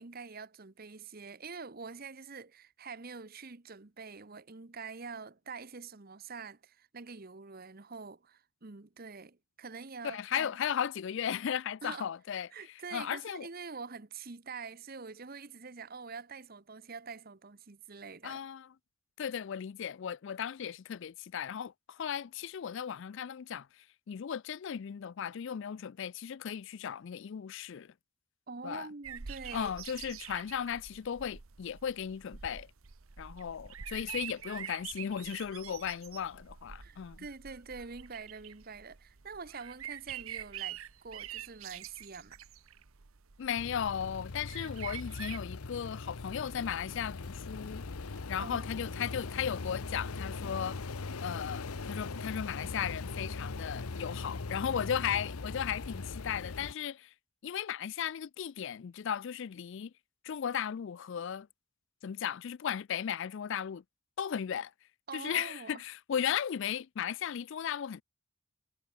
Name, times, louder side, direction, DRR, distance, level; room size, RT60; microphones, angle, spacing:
voice 1, 0.0-10.5 11.8-12.1 12.5-18.4 28.5-29.7 36.8-42.4 48.4-48.9 65.1-65.8, right 4 dB, 40° right, 0.9 m, -45 dB
voice 2, 10.0-12.5 12.9-13.5 18.2-18.7 19.2-27.9 28.6-28.9 29.5-32.7 33.2-37.2 43.4-47.8 48.3-50.8 51.2-57.1 57.4-59.9 60.2-61.5 62.0-63.8 64.2-64.7 65.1-68.0, left 8 dB, 55° left, 0.3 m, -36 dB
sound 1, 29.0-45.4, right 9 dB, 70° right, 1.0 m, -46 dB
sound 2, 43.6-56.7, left 3 dB, 80° left, 0.9 m, -40 dB
head